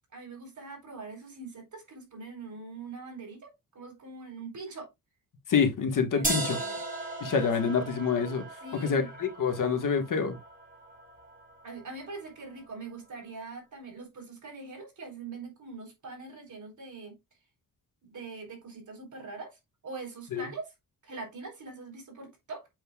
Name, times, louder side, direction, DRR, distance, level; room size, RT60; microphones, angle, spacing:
voice 1, 0.1-4.9 6.1-6.8 7.2-7.5 8.6-9.1 11.6-17.2 18.0-20.7 21.0-22.7, right 3 dB, 60° right, 4.1 m, -43 dB
voice 2, 5.5-6.6 7.2-8.5 8.8-10.4 20.3-20.5, left 6 dB, 65° left, 1.5 m, -27 dB
sound 1, 6.2-12.2, right 2 dB, 25° right, 3.1 m, -37 dB
7.9 x 6.5 x 2.3 m
wide cardioid pair, 130°, 34 cm